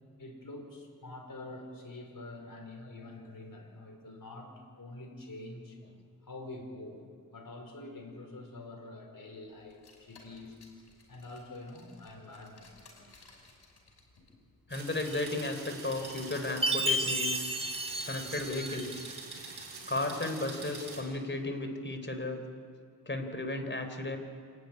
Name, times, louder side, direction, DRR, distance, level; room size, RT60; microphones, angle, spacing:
voice 1, 0.2-4.5 4.8-5.8 6.2-10.6 11.1-12.7, left 2 dB, 55° left, 2 dB, 5.1 m, -46 dB
Car, 9.6-19.1, left 2 dB, 85° left, 5.5 m, -59 dB
voice 2, 14.7-17.5 18.1-19.1 19.9-22.4 23.1-24.2, left 2 dB, 30° left, 6 dB, 4.0 m, -34 dB
sound 1, 14.7-21.0, right 4 dB, 90° right, 5.2 m, -45 dB
Chime, 16.6-19.1, equal, 15° right, 1.8 m, -32 dB
27.5 x 11.5 x 9.9 m, 2.3 s
cardioid pair, 45°, 38 cm